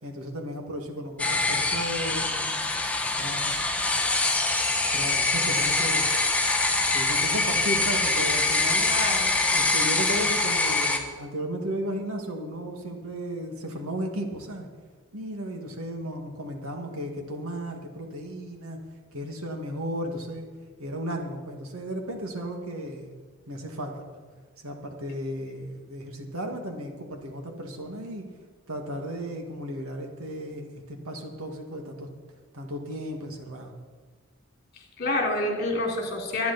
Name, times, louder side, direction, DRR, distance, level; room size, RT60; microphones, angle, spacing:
voice 1, 0.0-2.8 3.2-3.6 4.9-6.2 6.9-8.9 9.5-14.7 15.1-18.8 19.1-20.5 20.8-23.2 23.5-24.2 24.6-28.2 28.7-32.1 32.5-33.7, equal, 80° right, 2 dB, 2.2 m, -34 dB
sound 1, 1.2-11.0, left 3 dB, 5° left, 1.2 m, -24 dB
voice 2, 8.9-9.3 35.0-36.5, left 2 dB, 45° left, 1 dB, 3.2 m, -27 dB
24.0 x 9.4 x 4.3 m, 1.5 s
head